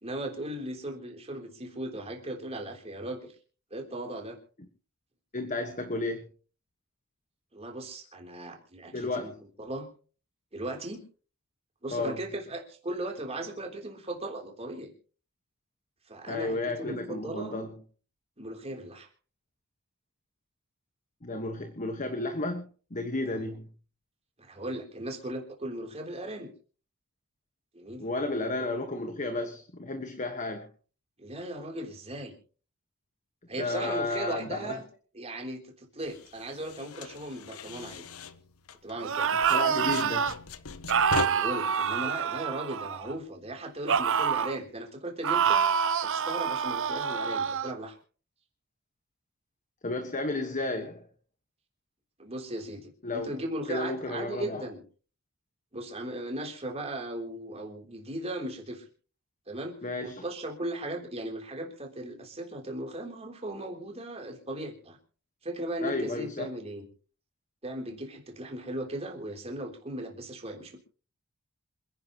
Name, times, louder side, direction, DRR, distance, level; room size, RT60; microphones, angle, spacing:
voice 1, 0.0-3.3 3.7-4.4 7.5-9.3 9.6-9.9 10.5-11.0 11.8-14.9 16.1-17.6 18.4-19.1 24.4-26.5 27.7-28.1 31.2-32.3 33.5-34.8 35.1-38.0 38.8-39.3 41.2-45.7 46.0-48.0 52.2-54.8 55.7-58.9 59.5-59.8 60.0-65.0 65.4-66.9 67.6-70.8, right 1 dB, 30° right, 2 dB, 3.5 m, -37 dB
voice 2, 5.3-6.3 8.9-9.3 11.9-12.2 16.3-17.8 21.2-22.6 22.9-23.7 28.0-30.7 33.6-34.8 39.3-40.3 49.8-51.0 53.0-53.4 53.7-54.7 59.8-60.2 65.8-66.5, left 2 dB, 35° left, 6 dB, 1.5 m, -32 dB
sound 1, 36.0-39.1 39.4-41.3, left 5 dB, 70° left, 1.0 m, -39 dB
sound 2, 39.0-40.3 40.9-43.2 43.9-44.6 45.2-47.7, right 7 dB, 60° right, 0.7 m, -27 dB
27.0 x 11.0 x 3.1 m, 0.39 s
head